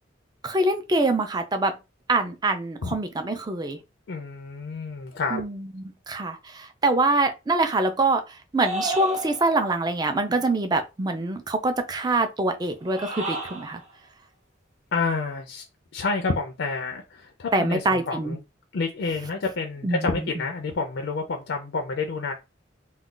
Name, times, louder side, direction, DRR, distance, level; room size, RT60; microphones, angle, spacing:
voice 1, 0.4-1.7 2.1-3.8 5.3-13.8 17.5-18.4 19.8-20.3, right 2 dB, 20° right, 0.4 m, -25 dB
voice 2, 4.1-5.4 14.9-15.7 15.9-18.4 18.7-22.3, left 4 dB, 65° left, 0.4 m, -29 dB
sound 1, 8.6-9.7 12.8-13.8, right 1 dB, 40° right, 0.8 m, -32 dB
2.3 x 2.2 x 3.7 m
head